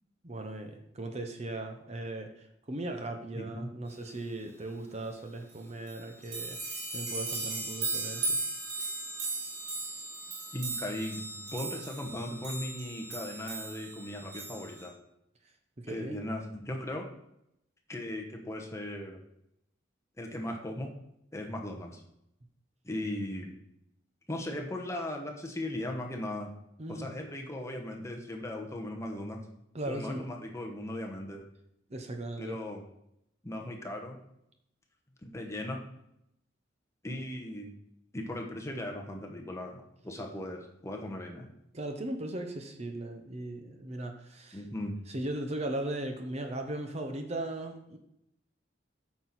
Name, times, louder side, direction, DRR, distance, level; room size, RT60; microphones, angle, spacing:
voice 1, 0.2-2.3 2.7-6.6 6.9-8.4 15.8-16.2 26.8-27.1 29.7-30.3 31.9-32.6 41.7-44.6 45.1-48.0, right 1 dB, 35° right, 5 dB, 0.8 m, -38 dB
voice 2, 3.3-3.7 10.5-15.0 15.9-17.1 17.9-19.2 20.2-20.9 21.3-22.0 22.8-23.6 24.3-26.5 26.9-29.4 29.8-31.4 32.4-32.8 33.4-34.2 35.2-35.8 37.0-37.7 38.1-41.5 44.5-44.9, left 1 dB, 15° left, 2 dB, 1.0 m, -38 dB
sound 1, 5.5-5.6 5.9-14.9, right 3 dB, 65° right, 2.5 m, -37 dB
9.0 x 6.1 x 4.2 m, 0.79 s
head